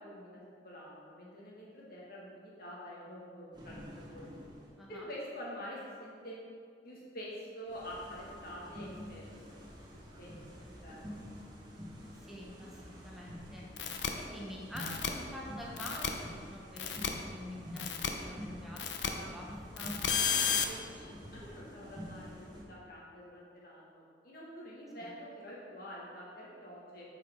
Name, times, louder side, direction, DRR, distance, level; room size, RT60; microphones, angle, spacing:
voice 1, 0.0-4.4 4.9-6.4 6.8-11.2 20.3-27.1, equal, 55° left, -5 dB, 1.7 m, -47 dB
sound 1, 3.5-4.9 7.7-22.6, equal, 25° right, 1.1 m, -48 dB
voice 2, 4.8-5.1 12.2-13.7 14.2-17.9 18.1-19.5 19.7-19.9, equal, ahead, -4 dB, 0.7 m, -46 dB
sound 2, 13.8-14.1 14.8-15.1 15.8-16.1 16.8-17.1 17.8-18.1 18.8-19.1 19.8-20.7, left 7 dB, 85° left, 0.5 m, -32 dB
8.5 x 4.8 x 3.6 m, 2.1 s
head